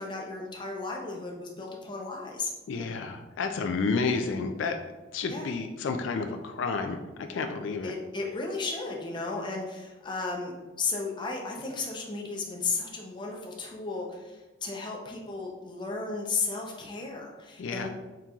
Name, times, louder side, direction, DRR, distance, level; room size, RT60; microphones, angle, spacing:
voice 1, 0.0-2.5 5.3-5.5 7.8-17.9, left 3 dB, 25° left, 0 dB, 0.5 m, -34 dB
voice 2, 2.7-4.8 5.1-7.0 7.3-7.9 17.6-17.9, left 4 dB, 70° left, 6 dB, 0.3 m, -30 dB
4.3 x 3.8 x 2.3 m, 1.2 s
head